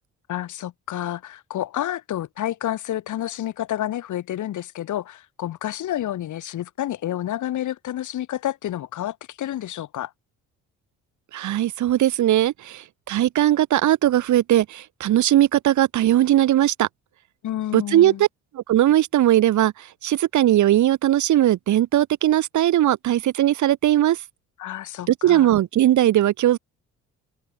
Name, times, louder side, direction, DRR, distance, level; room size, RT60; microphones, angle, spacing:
voice 1, 0.3-10.1 17.4-18.2 24.6-25.5, left 12 dB, 75° left, 5.9 m, -29 dB
voice 2, 11.3-16.9 17.7-18.3 18.5-24.2 25.1-26.6, right 13 dB, 75° right, 1.8 m, -19 dB
cardioid pair, 90°, 30 cm